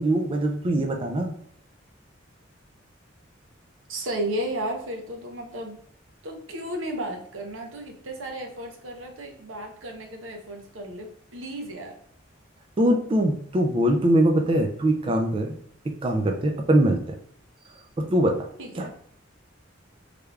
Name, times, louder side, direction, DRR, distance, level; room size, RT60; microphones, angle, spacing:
voice 1, 0.0-1.3 12.8-15.5 16.0-17.1 18.1-18.4 18.8-18.9, right 1 dB, 25° right, 3 dB, 0.3 m, -22 dB
voice 2, 3.9-5.8 6.2-12.0 18.6-18.9, right 1 dB, 85° right, 2 dB, 0.8 m, -34 dB
3.3 x 3.3 x 2.3 m, 0.70 s
head